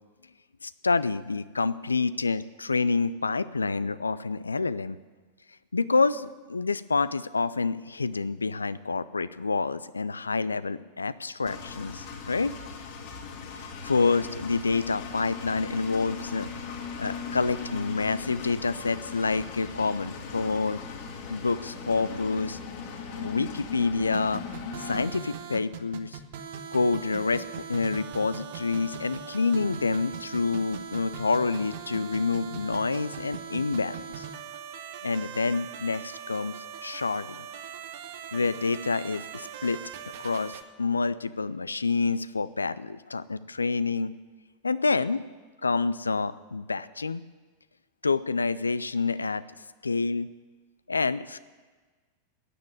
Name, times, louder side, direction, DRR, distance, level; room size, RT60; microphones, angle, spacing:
voice 1, 0.6-5.0 5.7-12.5 13.8-16.5 17.0-20.8 21.3-22.6 23.1-24.4 24.8-26.2 26.7-34.2 35.0-36.6 36.8-37.3 38.3-39.8 40.2-44.1 44.6-45.2 45.6-47.2 48.0-49.4 49.8-50.3 50.9-51.4, left 4 dB, 80° left, 16 dB, 0.5 m, -28 dB
Engine, 11.5-25.0, left 5 dB, 50° left, 2.4 m, -39 dB
sound 1, 24.1-40.6, right 8 dB, 55° right, 1.1 m, -40 dB
13.5 x 9.7 x 9.5 m, 1.4 s
figure-of-eight pair, 90°, 0 cm